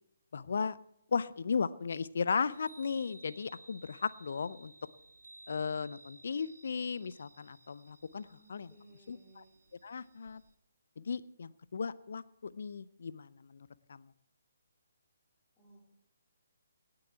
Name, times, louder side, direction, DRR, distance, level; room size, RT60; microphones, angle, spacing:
voice 1, 0.3-0.8 1.1-4.7 5.5-8.7 9.1-9.4 9.8-10.4 11.0-14.1, left 5 dB, 55° left, 18 dB, 0.6 m, -36 dB
Chime, 2.4-10.5, right 2 dB, 60° right, 1.5 m, -58 dB
voice 2, 8.3-9.5 15.6-15.9, right 1 dB, 10° left, -6 dB, 3.2 m, -60 dB
18.0 x 7.9 x 7.0 m, 0.78 s
figure-of-eight pair, 135°, 0 cm